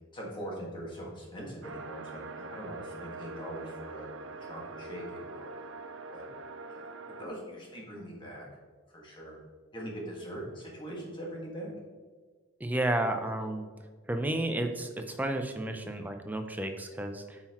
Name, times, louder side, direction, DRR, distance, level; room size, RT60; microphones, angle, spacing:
voice 1, 0.0-4.1 4.4-5.5 6.1-6.2 6.7-6.9 7.2-8.5 8.9-9.4 9.7-11.7, equal, 25° left, -3 dB, 1.6 m, -42 dB
sound 1, 1.6-7.3, right 3 dB, 70° right, 0.5 m, -44 dB
voice 2, 12.6-13.7 14.1-17.4, right 1 dB, 10° right, 5 dB, 0.5 m, -32 dB
8.3 x 5.8 x 3.0 m, 1.5 s
head